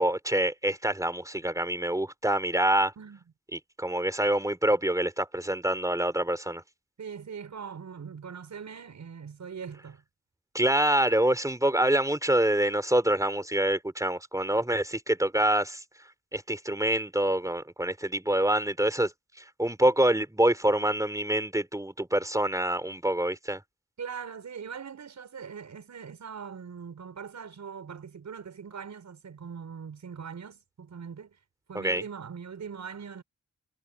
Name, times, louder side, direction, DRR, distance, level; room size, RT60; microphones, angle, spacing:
voice 1, 0.0-2.9 3.5-6.6 10.5-15.8 16.3-19.1 19.4-23.6 31.7-32.0, right 1 dB, 10° right, 4.0 m, -26 dB
voice 2, 7.0-10.0 24.0-31.4 31.7-33.2, right 6 dB, 70° right, 6.9 m, -41 dB
cardioid pair, 50°, 29 cm